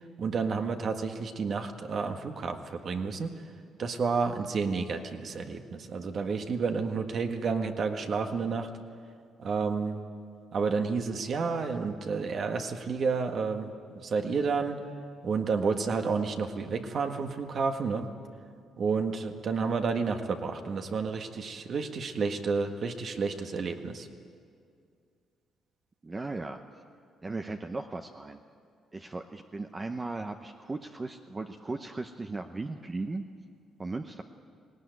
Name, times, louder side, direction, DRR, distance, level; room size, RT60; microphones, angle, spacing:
voice 1, 0.2-3.3 3.8-8.7 9.4-10.0 10.5-13.7 14.0-14.8 15.2-18.1 18.8-24.1, right 5 dB, 55° right, 6 dB, 1.6 m, -30 dB
voice 2, 26.0-26.6 27.2-28.4 28.9-33.2 33.8-34.2, right 3 dB, 25° right, 5 dB, 0.8 m, -37 dB
18.5 x 18.0 x 9.3 m, 2.3 s
cardioid pair, 90°, 0 cm